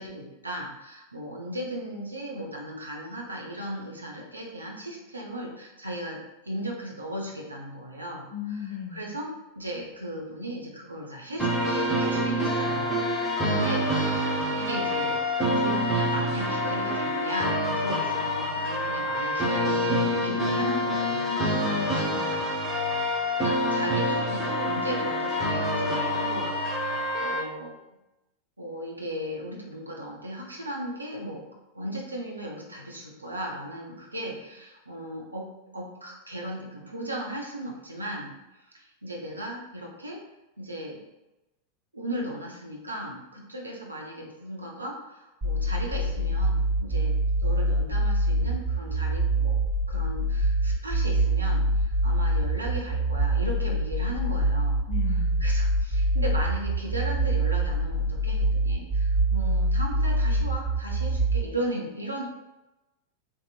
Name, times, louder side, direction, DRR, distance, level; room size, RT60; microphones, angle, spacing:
voice 1, 0.0-6.2 6.4-14.2 14.5-21.4 23.4-27.8 28.6-31.4 31.7-38.3 38.6-40.2 40.6-41.0 41.9-54.8 55.1-62.2, equal, 80° right, -2 dB, 0.6 m, -36 dB
voice 2, 8.3-9.0 21.3-22.3 54.9-55.4, left 8 dB, 50° left, 4 dB, 0.5 m, -36 dB
sound 1, 11.4-27.4, equal, 5° right, 0.8 m, -26 dB
sound 2, 45.4-61.4, right 1 dB, 20° right, 1.5 m, -24 dB
3.5 x 2.8 x 2.3 m, 0.99 s
figure-of-eight pair, 90°, 0 cm